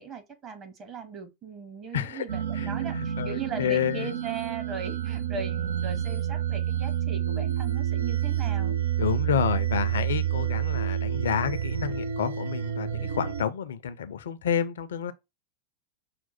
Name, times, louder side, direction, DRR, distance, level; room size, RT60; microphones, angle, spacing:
voice 1, 0.0-8.7, right 5 dB, 30° right, 1.2 m, -38 dB
voice 2, 1.9-2.2 2.6-4.1 9.0-15.1, left 8 dB, 60° left, 0.6 m, -29 dB
sound 1, 2.3-13.4, right 10 dB, 65° right, 0.4 m, -29 dB
5.8 x 2.1 x 4.3 m
figure-of-eight pair, 90°, 0 cm